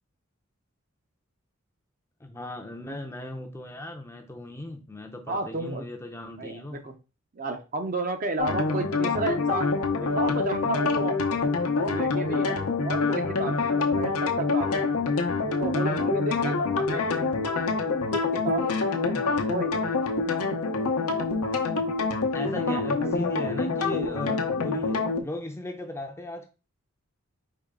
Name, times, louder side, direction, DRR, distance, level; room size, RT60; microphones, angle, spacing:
voice 1, 2.2-6.8 19.2-19.5 22.3-26.5, left 1 dB, 10° left, 0.5 m, -37 dB
voice 2, 5.3-5.8 6.4-6.9 7.3-9.7 10.1-11.2 11.9-15.0 15.5-17.4 17.7-19.2 19.5-19.8 23.0-23.2, right 2 dB, 40° right, 0.6 m, -32 dB
sound 1, 8.4-25.2, left 4 dB, 85° left, 0.7 m, -26 dB
4.6 x 3.0 x 3.7 m
head